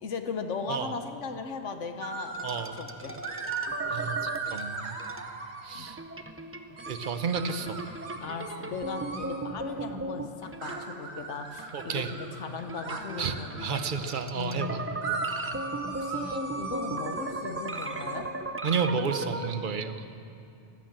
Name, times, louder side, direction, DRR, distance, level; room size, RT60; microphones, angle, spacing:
voice 1, 0.0-3.2 5.7-5.9 8.2-13.8 14.3-14.8 15.9-18.3, left 5 dB, 80° left, 7 dB, 1.3 m, -38 dB
sound 1, 2.0-2.7 3.2-6.0 6.8-9.4 10.6-14.0 15.0-18.2, right 4 dB, 70° right, 1.5 m, -38 dB
sound 2, 2.3-5.4 5.9-11.1 11.5-19.5, right 2 dB, 20° right, 0.4 m, -37 dB
voice 2, 2.4-2.8 3.9-5.0 5.6-6.0 6.9-7.8 11.7-12.1 13.2-14.8 18.6-20.0, right 6 dB, 50° right, 9 dB, 0.8 m, -31 dB
15.0 x 12.0 x 7.4 m, 2.6 s
omnidirectional pair, 1.2 m